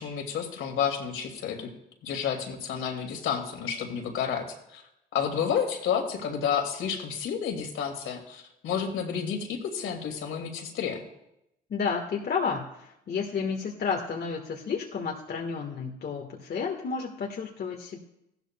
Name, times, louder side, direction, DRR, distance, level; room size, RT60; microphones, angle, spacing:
voice 1, 0.0-1.7 2.0-4.5 4.7-4.8 5.1-11.0, left 7 dB, 70° left, 3 dB, 2.2 m, -30 dB
voice 2, 11.7-18.0, left 5 dB, 50° left, 1 dB, 1.4 m, -31 dB
15.5 x 12.0 x 2.2 m, 0.83 s
supercardioid pair, 60°, 21 cm